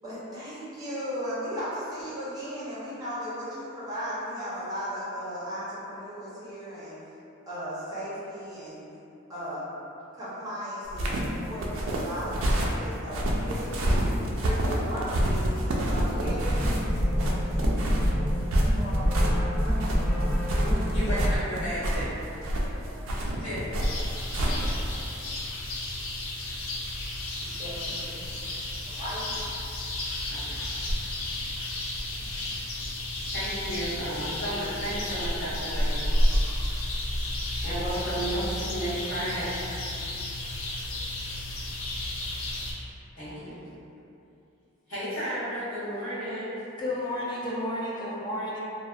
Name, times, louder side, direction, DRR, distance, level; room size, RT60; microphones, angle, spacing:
voice 1, 0.0-7.0 7.5-8.8 9.3-9.7 10.1-14.1 14.4-17.7 18.6-19.1 19.4-19.8 20.3-20.4 21.0-21.2 21.9-22.0 22.9-23.0 27.4-28.2 28.9-29.3, equal, 20° right, -11 dB, 0.6 m, -37 dB
sound 1, 10.9-24.9, right 1 dB, 75° right, 0.3 m, -28 dB
sound 2, 16.2-21.2, equal, 45° left, 1.1 m, -26 dB
voice 2, 20.6-22.1 23.4-23.8 30.3-30.6 33.3-36.6 37.6-39.6 43.2-43.6 44.9-46.5, right 1 dB, 70° left, -13 dB, 1.2 m, -33 dB
sound 3, 23.8-42.7, left 1 dB, 85° left, 0.4 m, -31 dB
voice 3, 46.8-48.6, left 1 dB, 20° left, -6 dB, 0.3 m, -31 dB
2.6 x 2.0 x 2.3 m, 2.8 s
head